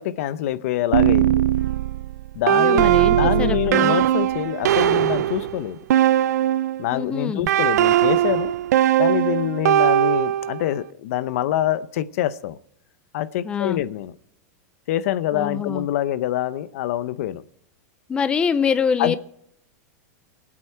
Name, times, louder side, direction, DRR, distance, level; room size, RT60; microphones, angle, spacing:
voice 1, 0.0-1.4 2.3-5.8 6.8-8.5 9.0-12.6 13.1-14.1 14.9-17.4 19.0-19.2, left 12 dB, 60° left, 16 dB, 0.7 m, -25 dB
sound 1, 0.9-6.9 7.5-10.7, right 12 dB, 85° right, 0.6 m, -19 dB
voice 2, 2.5-4.0 6.9-7.5 13.4-13.8 15.3-15.9 18.1-19.2, left 6 dB, 10° left, 14 dB, 0.4 m, -24 dB
24.0 x 8.6 x 4.5 m, 0.71 s
supercardioid pair, 165°, 9 cm